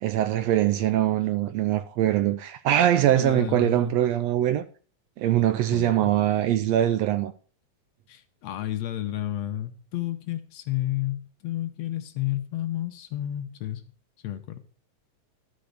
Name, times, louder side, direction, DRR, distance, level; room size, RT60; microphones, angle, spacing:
voice 1, 0.0-4.6 5.2-7.3, right 12 dB, 75° right, 1.7 m, -23 dB
voice 2, 3.2-4.0 5.7-6.1 8.1-13.8 14.2-14.6, left 13 dB, 70° left, 1.9 m, -31 dB
13.0 x 5.2 x 6.6 m
omnidirectional pair, 3.3 m